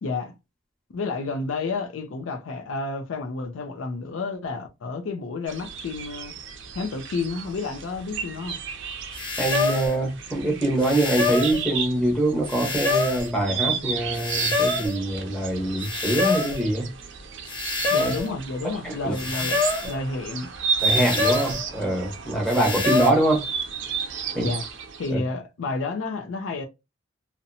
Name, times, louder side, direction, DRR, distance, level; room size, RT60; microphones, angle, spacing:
voice 1, 0.0-0.3 0.9-6.3 6.7-8.6 17.9-20.5 24.4-24.6 25.0-26.6, left 3 dB, 75° left, 0.4 m, -30 dB
sound 1, 5.5-25.1, right 5 dB, 70° right, 0.5 m, -33 dB
sound 2, 9.1-10.0 10.8-11.6 12.5-13.3 14.1-15.0 15.8-16.6 17.5-18.3 19.1-20.0 20.8-21.6 22.5-23.1, left 3 dB, 25° left, 0.6 m, -26 dB
voice 2, 9.4-16.9 17.9-18.1 18.8-19.5 20.8-23.4 24.3-24.5 25.1-25.2, right 1 dB, 5° left, 0.9 m, -24 dB
2.7 x 2.1 x 2.6 m
head